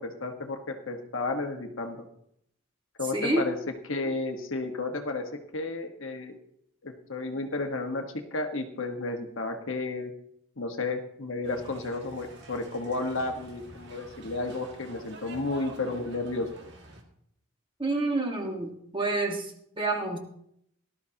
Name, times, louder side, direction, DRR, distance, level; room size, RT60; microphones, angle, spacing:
voice 1, 0.0-2.0 3.0-3.6 3.9-6.4 6.8-8.0 8.3-10.1 10.6-16.5, left 3 dB, 65° left, 4 dB, 1.3 m, -32 dB
voice 2, 3.1-3.4 17.8-20.2, right 2 dB, 25° right, 1 dB, 1.6 m, -28 dB
sound 1, 11.4-17.0, right 2 dB, 55° right, 2.1 m, -48 dB
18.5 x 12.5 x 2.9 m, 0.73 s
head